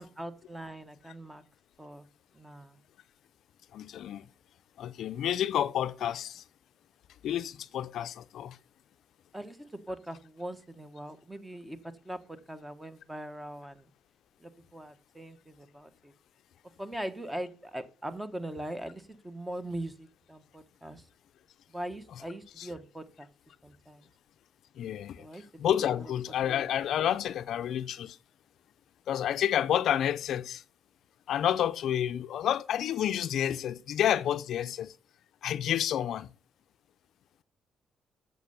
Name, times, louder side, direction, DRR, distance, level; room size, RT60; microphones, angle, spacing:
voice 1, 0.0-1.4 1.8-2.1 2.3-2.8 9.3-11.8 12.0-13.8 14.4-16.1 16.8-21.0 21.7-23.3 23.6-24.1 25.2-25.7, right 1 dB, 10° right, 1.1 m, -41 dB
voice 2, 3.7-4.3 4.8-6.4 7.2-8.6 22.6-22.7 24.8-28.2 29.1-30.6 31.3-34.9 35.4-36.3, left 10 dB, 75° left, 0.4 m, -30 dB
8.2 x 6.8 x 6.5 m
cardioid pair, 90°, 0 cm